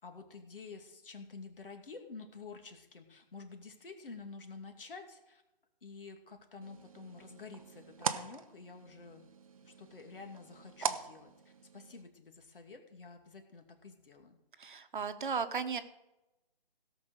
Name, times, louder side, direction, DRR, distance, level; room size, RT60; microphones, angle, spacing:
voice 1, 0.0-5.4 5.8-9.3 9.6-11.3 11.7-14.4, left 4 dB, 65° left, 5 dB, 2.4 m, -50 dB
sound 1, 6.6-12.0, right 6 dB, 35° right, 0.7 m, -41 dB
voice 2, 14.6-15.8, right 5 dB, 55° right, 10 dB, 1.2 m, -35 dB
17.0 x 5.9 x 6.5 m, 0.96 s
hypercardioid pair, 160°, 29 cm